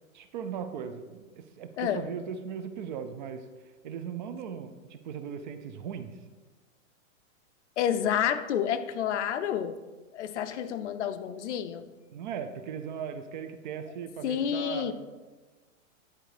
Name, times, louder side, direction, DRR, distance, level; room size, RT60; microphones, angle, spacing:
voice 1, 0.1-3.5 3.8-6.2 12.1-14.9, right 7 dB, 35° right, 9 dB, 0.5 m, -38 dB
voice 2, 7.8-9.8 10.1-11.9 14.2-14.9, left 9 dB, 60° left, 11 dB, 0.7 m, -29 dB
10.5 x 4.4 x 4.9 m, 1.3 s
hypercardioid pair, 150°, 40 cm